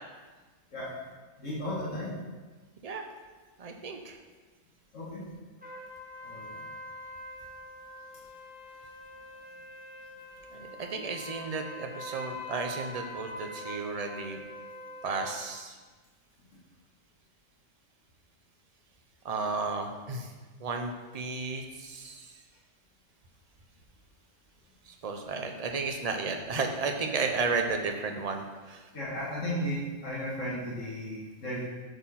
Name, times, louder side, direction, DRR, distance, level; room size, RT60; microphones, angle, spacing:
voice 1, 1.4-2.1 4.9-5.2 6.2-6.6 28.9-31.7, equal, 80° left, -7 dB, 2.1 m, -35 dB
voice 2, 3.6-4.2 10.6-14.4 15.0-15.7 19.2-20.3 20.6-22.3 25.0-28.8, right 4 dB, 35° right, 4 dB, 0.7 m, -33 dB
sound 1, 5.6-15.5, left 1 dB, 5° right, 1.2 m, -44 dB
8.0 x 4.5 x 5.8 m, 1.3 s
omnidirectional pair, 1.3 m